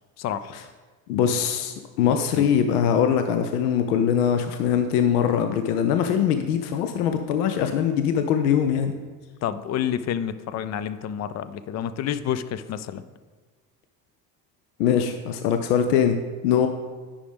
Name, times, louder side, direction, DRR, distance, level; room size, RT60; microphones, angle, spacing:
voice 1, 0.2-0.5 2.1-2.5 9.4-13.0, left 9 dB, 35° left, 13 dB, 0.5 m, -29 dB
voice 2, 1.1-8.9 14.8-16.7, left 8 dB, 75° left, 8 dB, 0.6 m, -22 dB
9.9 x 5.1 x 3.5 m, 1.4 s
hypercardioid pair, 60°, 47 cm